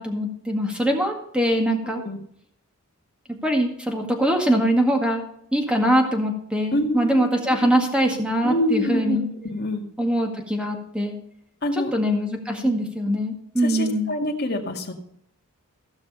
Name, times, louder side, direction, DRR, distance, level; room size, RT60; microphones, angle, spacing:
voice 1, 0.0-2.0 3.4-5.2 5.5-9.3 10.0-11.2 11.7-14.1, equal, 5° right, 2 dB, 1.9 m, -22 dB
voice 2, 1.8-2.2 6.7-7.3 7.6-7.7 8.4-9.8 11.6-11.9 12.6-12.9 13.6-14.9, left 1 dB, 45° left, 1 dB, 2.0 m, -26 dB
15.5 x 6.4 x 5.5 m, 0.69 s
head